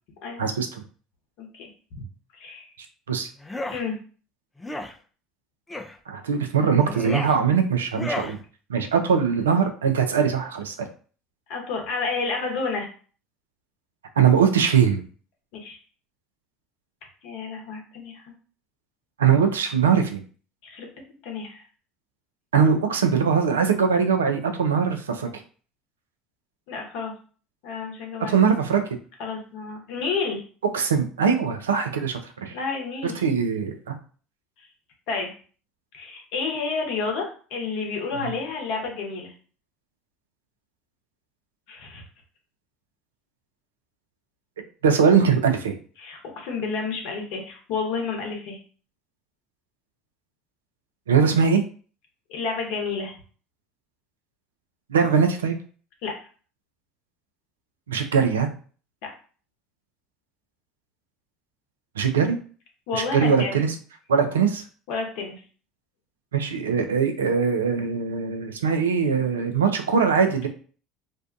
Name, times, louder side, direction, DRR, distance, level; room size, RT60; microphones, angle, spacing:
voice 1, 0.4-0.8 3.1-3.3 6.1-8.4 8.7-10.9 14.2-15.0 19.2-20.2 22.5-25.3 28.2-28.8 30.7-32.6 33.0-34.0 38.2-38.3 44.8-45.7 51.1-51.6 54.9-55.6 57.9-58.5 62.0-62.4 62.9-63.7 64.1-64.6 66.3-70.5, right 6 dB, 85° right, 5 dB, 0.4 m, -21 dB
voice 2, 1.4-1.7 2.3-2.7 3.7-4.0 11.5-12.9 15.5-15.8 17.2-18.3 20.6-20.9 21.2-21.6 26.7-27.1 27.6-28.4 29.2-30.4 32.5-33.2 35.1-35.3 35.9-39.3 41.7-42.0 46.0-48.6 52.3-53.1 56.0-56.1 59.0-59.1 62.9-63.6 64.9-65.4, left 4 dB, 65° left, 2 dB, 0.8 m, -30 dB
sound 1, 3.4-3.8 4.6-4.9 5.7-6.0 6.8-7.4 7.9-8.4, left 2 dB, 15° left, 0.4 m, -32 dB
2.5 x 2.2 x 2.4 m, 0.40 s
hypercardioid pair, 70°, 0 cm